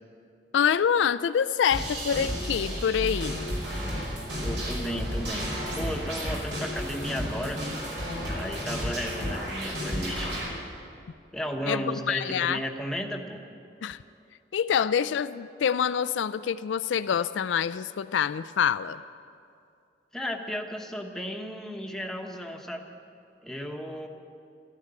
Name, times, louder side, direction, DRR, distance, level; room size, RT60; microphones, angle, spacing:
voice 1, 0.5-3.4 11.7-12.6 13.8-14.0 14.5-19.0, left 8 dB, 80° left, 14 dB, 0.3 m, -26 dB
sound 1, 1.7-10.4, equal, 80° right, 5.4 m, -32 dB
voice 2, 4.4-7.6 8.3-10.4 11.3-13.4 20.1-22.9 23.4-24.1, equal, 5° left, 2 dB, 1.0 m, -34 dB
14.0 x 11.5 x 8.7 m, 2.5 s
head